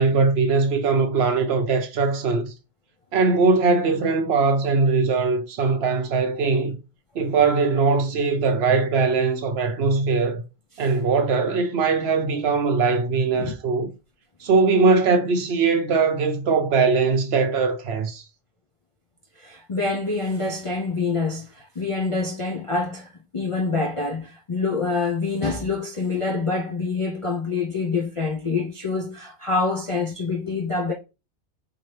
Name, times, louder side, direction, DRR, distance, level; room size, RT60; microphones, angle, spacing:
voice 1, 0.0-2.5 3.1-6.8 7.1-10.4 10.8-13.9 14.4-18.2, right 4 dB, 60° right, 0.8 m, -21 dB
voice 2, 19.4-30.9, left 3 dB, 45° left, 0.4 m, -26 dB
4.3 x 2.8 x 3.1 m
omnidirectional pair, 1.3 m